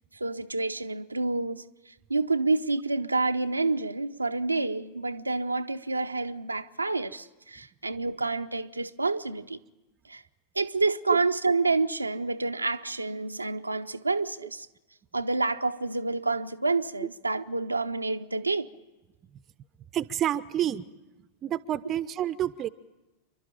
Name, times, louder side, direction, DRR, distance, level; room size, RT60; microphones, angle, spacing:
voice 1, 0.1-1.6 2.1-9.6 10.1-10.2 10.5-14.7 15.1-18.7, right 3 dB, 85° right, 0.7 m, -28 dB
voice 2, 19.9-20.8 21.4-22.7, right 11 dB, 30° right, 0.7 m, -29 dB
28.5 x 12.0 x 8.9 m
figure-of-eight pair, 90°, 0 cm